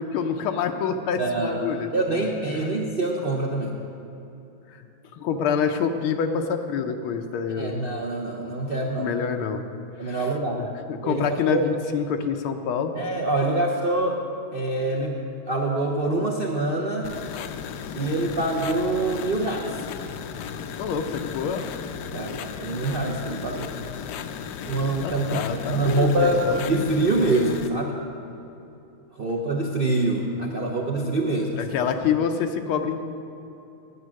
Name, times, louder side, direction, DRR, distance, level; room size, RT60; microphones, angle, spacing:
voice 1, 0.0-2.3 4.8-4.9 5.1-7.8 9.0-9.6 10.0-10.3 10.6-12.9 20.8-21.6 25.0-26.9 31.6-33.0, left 6 dB, 90° left, 5 dB, 1.6 m, -27 dB
voice 2, 1.2-1.6 1.9-3.7 7.6-9.1 10.0-10.6 11.0-11.7 12.9-14.2 14.5-15.2 15.5-17.1 17.9-19.7 22.1-23.7 24.6-28.0 29.2-31.7, right 2 dB, 75° right, -1 dB, 0.5 m, -25 dB
sound 1, 17.0-27.7, left 7 dB, 75° left, 1.0 m, -35 dB
11.0 x 8.9 x 6.3 m, 2.9 s
omnidirectional pair, 2.3 m